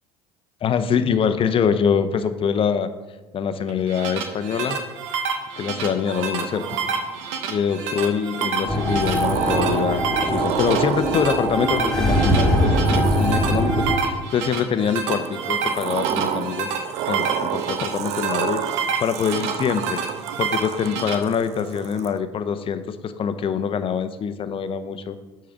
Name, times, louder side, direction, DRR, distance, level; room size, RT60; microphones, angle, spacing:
voice 1, 0.6-2.9 3.3-4.8 5.6-6.8 7.5-13.7 14.0-16.7 17.1-18.6 19.0-20.0 20.4-25.2, left 7 dB, 40° left, 11 dB, 0.7 m, -24 dB
sound 1, 3.7-21.1, right 6 dB, 70° right, 0.9 m, -29 dB
Sliding door, 6.1-7.4 8.4-14.0 15.1-22.2, right 9 dB, 50° right, 0.5 m, -30 dB
sound 2, 8.7-14.0, equal, 5° left, 2.1 m, -22 dB
8.3 x 3.8 x 5.9 m, 1.2 s
hypercardioid pair, 65°, 14 cm